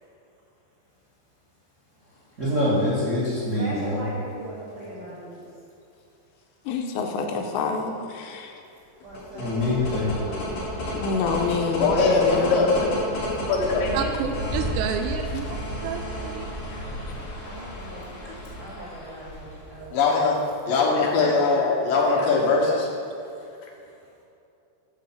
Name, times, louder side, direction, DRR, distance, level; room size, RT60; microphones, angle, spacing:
voice 1, 2.4-4.1 9.4-10.3, left 1 dB, 65° right, -8 dB, 0.7 m, -24 dB
voice 2, 3.4-5.4 8.7-11.1 17.4-18.1 18.6-20.7 21.1-22.8, equal, 40° right, -8 dB, 2.8 m, -39 dB
voice 3, 6.7-8.5 11.0-12.7, left 4 dB, 85° left, 3 dB, 2.8 m, -27 dB
sound 1, 9.0-19.8, equal, 45° left, 3.6 m, -32 dB
voice 4, 11.8-13.1 13.5-14.1 16.7-16.8 19.9-22.9, left 4 dB, 65° left, -1 dB, 2.3 m, -21 dB
voice 5, 13.9-15.5 15.8-16.5, right 7 dB, 80° right, 5 dB, 2.5 m, -30 dB
11.5 x 4.2 x 7.3 m, 2.6 s
omnidirectional pair, 5.2 m